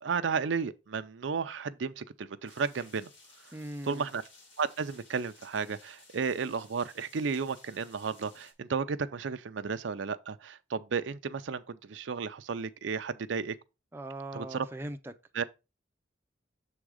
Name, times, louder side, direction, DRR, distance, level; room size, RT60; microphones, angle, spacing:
voice 1, 0.0-3.1 3.5-3.6 3.8-4.2 4.6-13.6 14.3-14.7 15.3-15.4, right 5 dB, 75° right, 0.5 m, -33 dB
sound 1, 2.4-8.5, left 3 dB, 90° left, 2.6 m, -57 dB
voice 2, 3.5-4.1 13.9-15.1, right 1 dB, 10° right, 0.5 m, -40 dB
7.0 x 3.7 x 4.8 m
head